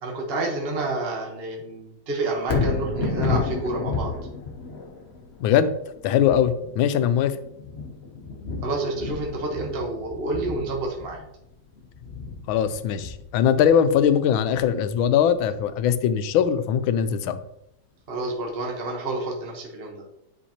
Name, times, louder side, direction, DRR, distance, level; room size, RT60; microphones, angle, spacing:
voice 1, 0.0-4.1 8.6-11.2 18.1-20.0, right 2 dB, 35° right, 0 dB, 1.1 m, -29 dB
Thunder, 2.4-16.6 17.1-17.2, left 4 dB, 45° left, 0.9 m, -32 dB
voice 2, 5.4-5.7 6.0-7.4 12.5-17.4, left 8 dB, 85° left, 11 dB, 1.4 m, -21 dB
10.0 x 5.2 x 2.9 m, 0.81 s
omnidirectional pair, 2.2 m